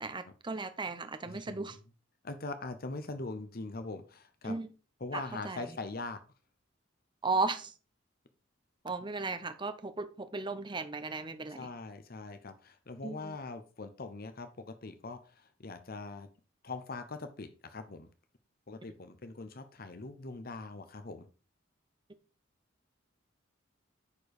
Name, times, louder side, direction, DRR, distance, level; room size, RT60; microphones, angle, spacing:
voice 1, 0.0-1.8 4.4-4.7 5.1-5.7 7.2-7.7 8.8-11.7 13.0-13.4, right 3 dB, 25° right, 0.8 m, -36 dB
voice 2, 2.2-4.6 5.0-6.2 11.5-16.3 16.6-18.1 18.7-21.3, left 3 dB, 50° left, 0.9 m, -42 dB
9.8 x 4.6 x 4.8 m
head